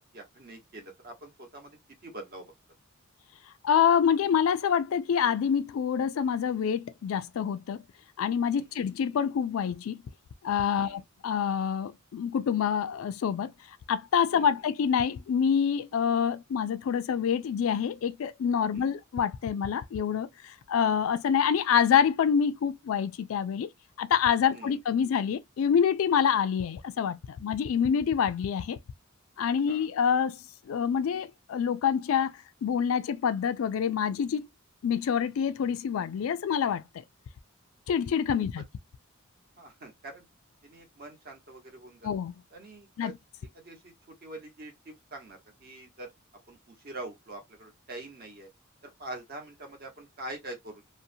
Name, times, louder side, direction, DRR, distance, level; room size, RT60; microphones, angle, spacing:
voice 1, 0.0-1.7 2.0-2.5 8.6-8.7 10.8-11.0 14.4-14.5 18.7-18.9 24.5-24.8 29.7-29.9 38.4-38.5 39.6-40.3 40.6-42.1 42.5-43.1 43.5-46.1 46.5-48.5 48.8-50.8, right 2 dB, 45° right, 1.0 m, -44 dB
voice 2, 3.6-7.8 8.2-10.0 10.4-13.5 13.9-23.7 24.0-28.8 29.4-30.4 30.7-32.3 32.6-34.4 34.8-36.8 37.9-38.6 42.0-42.4 43.0-43.2, left 7 dB, 70° left, 0.3 m, -26 dB
2.7 x 2.1 x 2.6 m
head